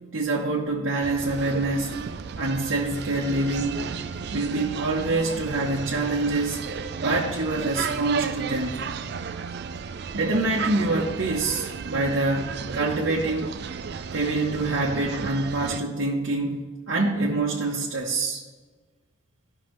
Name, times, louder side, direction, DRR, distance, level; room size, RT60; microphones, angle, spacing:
voice 1, 0.1-2.0 2.4-3.8 4.3-6.6 7.0-8.8 10.1-13.6 14.1-18.4, right 2 dB, 70° right, -4 dB, 0.9 m, -26 dB
sound 1, 1.0-15.8, right 6 dB, 50° right, 0.3 m, -33 dB
13.0 x 5.5 x 3.2 m, 1.4 s
head